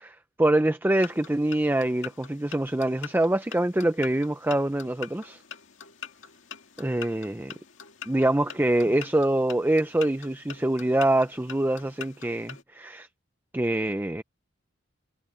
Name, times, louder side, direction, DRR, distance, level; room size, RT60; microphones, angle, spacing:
voice 1, 0.0-5.4 6.8-7.5 8.1-13.1 13.5-14.2, right 1 dB, 10° right, 0.5 m, -25 dB
sound 1, 0.9-12.6, left 8 dB, 70° left, 2.1 m, -44 dB
head